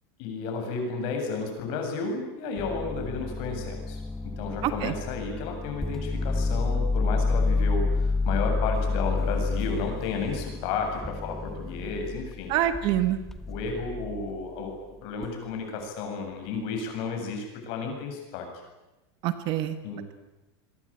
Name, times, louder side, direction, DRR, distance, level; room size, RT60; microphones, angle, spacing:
voice 1, 0.2-12.6 13.5-14.7 15.0-18.5 19.8-20.1, left 4 dB, 40° left, 4 dB, 7.8 m, -32 dB
sound 1, 2.6-14.3 15.2-15.6, left 3 dB, 5° left, 1.3 m, -29 dB
voice 2, 4.6-4.9 12.5-13.2 19.2-19.8, right 12 dB, 35° right, 10 dB, 1.4 m, -26 dB
27.5 x 23.0 x 9.0 m, 1.0 s
supercardioid pair, 175°, 13 cm